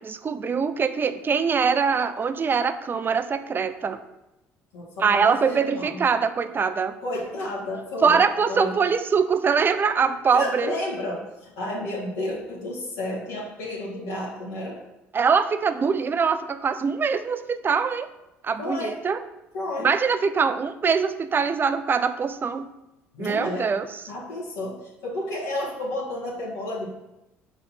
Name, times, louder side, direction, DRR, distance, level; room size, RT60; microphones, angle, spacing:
voice 1, 0.0-4.0 5.0-6.9 8.0-10.7 15.1-18.1 18.4-19.2 19.8-22.7 23.2-24.0, right 5 dB, 35° right, 10 dB, 0.4 m, -23 dB
voice 2, 4.7-6.0 7.0-8.2 8.5-8.8 10.3-14.8 18.6-19.0 19.5-19.9 23.1-23.7 24.1-26.9, left 1 dB, 80° left, -7 dB, 1.8 m, -31 dB
5.7 x 4.0 x 4.1 m, 0.93 s
hypercardioid pair, 65°, 6 cm